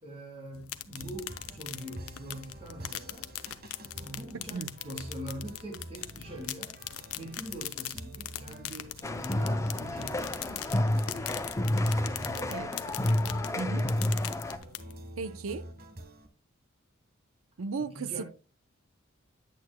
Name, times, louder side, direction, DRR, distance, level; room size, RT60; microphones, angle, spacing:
voice 1, 0.0-3.3 4.0-6.8 7.1-11.3 11.8-12.8 17.8-18.2, right 1 dB, 30° right, 2.8 m, -43 dB
sound 1, 0.5-15.1, left 12 dB, 90° left, 0.7 m, -42 dB
sound 2, 0.9-16.3, right 1 dB, 45° right, 1.2 m, -48 dB
sound 3, 9.0-14.6, left 1 dB, 15° left, 0.5 m, -30 dB
voice 2, 13.6-13.9 15.2-15.7 17.6-18.2, right 4 dB, 75° right, 0.6 m, -35 dB
9.1 x 8.3 x 2.2 m
head